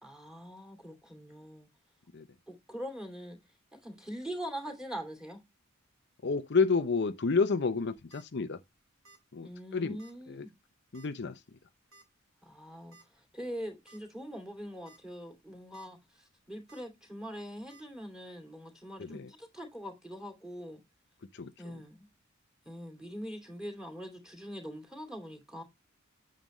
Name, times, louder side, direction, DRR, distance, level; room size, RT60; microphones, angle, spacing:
voice 1, 0.0-1.7 2.5-3.4 3.8-5.4 9.4-10.5 12.4-13.0 13.3-16.0 16.5-20.8 21.6-22.1 22.7-25.6, equal, 5° right, 2.7 m, -43 dB
voice 2, 6.2-8.6 9.3-10.0 10.3-10.5 10.9-11.4 19.0-19.3 21.3-21.8, left 4 dB, 55° left, 0.6 m, -30 dB
sound 1, 7.9-8.2 9.0-9.3 9.6-9.7 10.0-10.1 10.9-11.2 11.9-12.0 12.9-13.1 13.5-13.6 13.9-14.0 14.7-15.0 15.4-15.9 16.7-16.8 17.7-17.8, right 3 dB, 70° right, 2.8 m, -58 dB
9.1 x 7.6 x 3.1 m
head